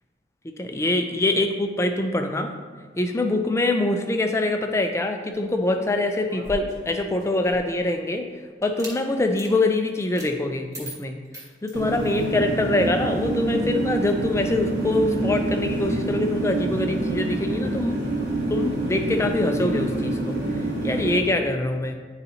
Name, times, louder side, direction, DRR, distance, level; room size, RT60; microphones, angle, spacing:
voice 1, 0.6-2.5 3.0-8.3 8.6-11.2 11.6-18.0 18.5-20.4 20.8-21.9, left 2 dB, 15° left, 5 dB, 0.4 m, -24 dB
sound 1, 6.2-7.8 8.6-9.0 9.3-9.5 10.1-10.3 10.7-12.3, right 1 dB, 20° right, 1.1 m, -40 dB
sound 2, 11.7-21.2, right 2 dB, 65° right, 1.3 m, -26 dB
10.0 x 4.0 x 2.8 m, 1.5 s
head